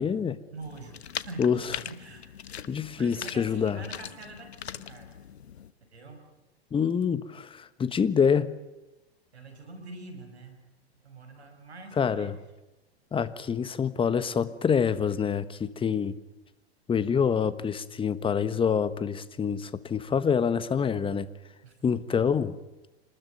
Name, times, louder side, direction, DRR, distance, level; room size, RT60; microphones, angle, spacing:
voice 1, 0.0-0.4 1.4-1.6 2.7-3.8 6.7-8.5 12.0-12.3 13.1-16.2 16.9-21.3 21.8-22.5, left 7 dB, 15° left, 15 dB, 1.3 m, -26 dB
voice 2, 0.5-5.2 5.9-6.3 9.3-10.7 11.0-12.4 21.6-21.8, right 2 dB, 85° right, 6 dB, 6.0 m, -45 dB
sound 1, 0.6-5.7, left 9 dB, 80° left, 1.2 m, -41 dB
27.0 x 20.5 x 9.4 m, 1.0 s
hypercardioid pair, 110°, 32 cm